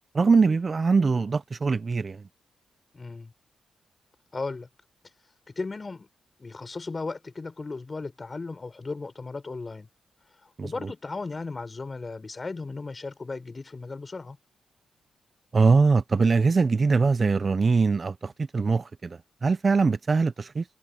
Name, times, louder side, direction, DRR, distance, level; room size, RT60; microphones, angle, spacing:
voice 1, 0.1-2.2 10.6-10.7 15.5-20.6, right 4 dB, 35° right, 0.6 m, -22 dB
voice 2, 2.9-3.3 4.3-4.7 5.5-6.1 6.4-9.9 10.4-14.4, left 3 dB, 30° left, 6.3 m, -36 dB
cardioid pair, 95°, 0 cm